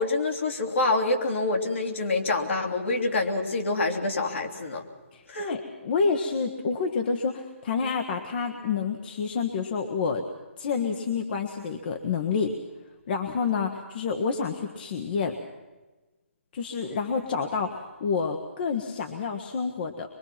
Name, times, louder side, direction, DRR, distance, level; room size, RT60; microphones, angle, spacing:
voice 1, 0.0-4.8 5.3-5.5, left 2 dB, 65° left, 2 dB, 3.2 m, -26 dB
voice 2, 5.1-10.3 10.6-12.6 13.1-15.4 16.5-20.1, left 5 dB, 45° left, 4 dB, 1.5 m, -28 dB
23.5 x 23.0 x 6.0 m, 1.2 s
figure-of-eight pair, 140°, 7 cm